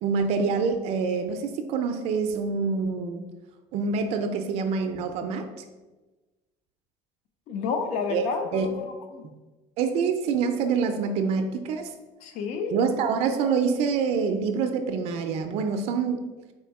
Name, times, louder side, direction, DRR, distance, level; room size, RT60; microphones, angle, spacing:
voice 1, 0.0-3.3 3.7-5.5 8.1-8.2 8.5-8.7 9.8-11.9 12.7-16.2, right 5 dB, 55° right, 6 dB, 0.4 m, -26 dB
voice 2, 7.5-9.3 12.2-12.8, left 5 dB, 65° left, 6 dB, 0.6 m, -30 dB
4.2 x 2.6 x 4.6 m, 1.2 s
cardioid pair, 175°, 13 cm